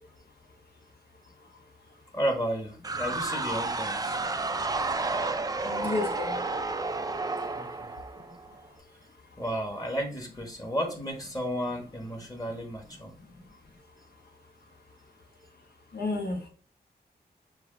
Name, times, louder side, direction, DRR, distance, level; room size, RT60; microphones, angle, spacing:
voice 1, 2.1-4.2 7.5-7.9 9.4-13.1, equal, 20° left, 1.2 m, -33 dB
sound 1, 2.8-8.6, right 3 dB, 20° right, 0.4 m, -31 dB
voice 2, 5.6-6.5 13.4-13.5 15.9-16.5, left 3 dB, 70° left, 1.3 m, -31 dB
5.9 x 2.4 x 3.6 m
wide cardioid pair, 95°, 17 cm